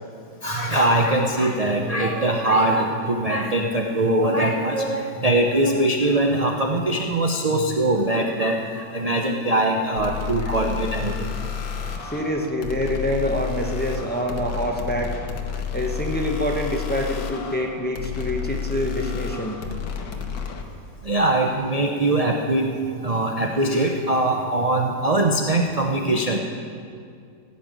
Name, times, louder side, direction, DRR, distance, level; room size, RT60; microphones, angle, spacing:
voice 1, 0.4-11.3 21.0-22.7 23.0-26.4, right 1 dB, 50° right, 1 dB, 0.4 m, -22 dB
sound 1, 10.0-20.6, left 7 dB, 70° left, 1.7 m, -31 dB
voice 2, 12.0-15.2 15.7-19.6, equal, 10° left, 1 dB, 0.6 m, -26 dB
16.5 x 5.9 x 8.9 m, 2.3 s
omnidirectional pair, 1.9 m